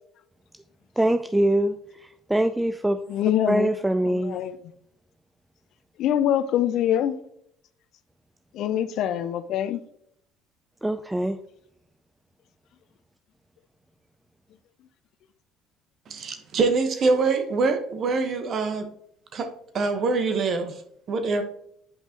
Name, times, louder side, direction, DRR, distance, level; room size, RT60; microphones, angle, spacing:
voice 1, 1.0-3.0 3.5-4.4 10.8-11.4, right 1 dB, 10° right, 0.4 m, -23 dB
voice 2, 3.1-3.7 4.1-4.5 6.0-7.2 8.5-9.8, left 10 dB, 60° left, 0.6 m, -24 dB
voice 3, 16.1-18.9 19.3-19.5 19.7-20.7 21.1-21.4, right 4 dB, 50° right, 1.2 m, -24 dB
8.7 x 5.3 x 3.0 m
hypercardioid pair, 60°, 0 cm